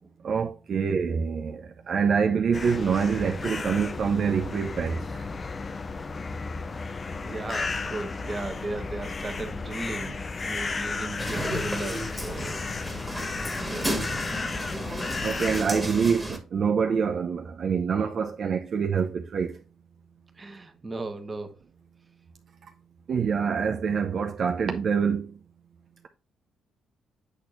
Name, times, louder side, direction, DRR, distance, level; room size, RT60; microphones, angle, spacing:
voice 1, 0.2-5.2 15.2-19.6 23.1-25.3, right 6 dB, 55° right, 0.7 m, -26 dB
sound 1, 2.5-15.6, left 4 dB, 35° left, 0.6 m, -34 dB
voice 2, 7.2-12.6 13.6-14.1 20.4-21.6, right 2 dB, 25° right, 1.4 m, -36 dB
sound 2, 11.2-16.4, equal, 5° right, 1.7 m, -33 dB
8.3 x 4.3 x 2.6 m
cardioid pair, 90°, 0 cm